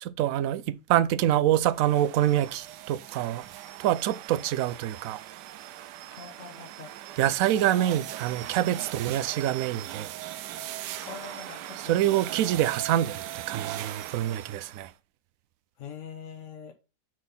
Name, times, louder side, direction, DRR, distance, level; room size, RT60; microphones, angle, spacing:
voice 1, 0.0-3.5 3.8-5.2 7.2-10.1 11.9-14.9, right 12 dB, 70° right, 0.9 m, -26 dB
sound 1, 1.7-14.9, right 13 dB, 85° right, 1.2 m, -40 dB
voice 2, 6.1-7.0 11.0-12.0 15.8-16.7, left 7 dB, 55° left, 1.3 m, -43 dB
6.6 x 4.1 x 5.6 m
omnidirectional pair, 1.8 m